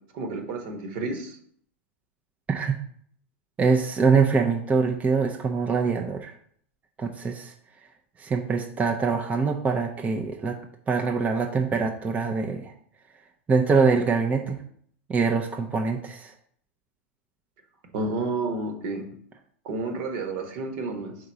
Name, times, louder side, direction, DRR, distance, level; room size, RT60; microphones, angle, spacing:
voice 1, 0.1-1.4 17.9-19.1 19.6-21.2, right 3 dB, 55° right, 4 dB, 1.3 m, -30 dB
voice 2, 3.6-6.3 7.0-7.5 8.2-10.6 10.9-12.7 13.5-14.6 15.1-16.3, right 5 dB, 20° right, 2 dB, 0.6 m, -24 dB
4.7 x 3.7 x 5.6 m, 0.62 s
hypercardioid pair, 105°, 7 cm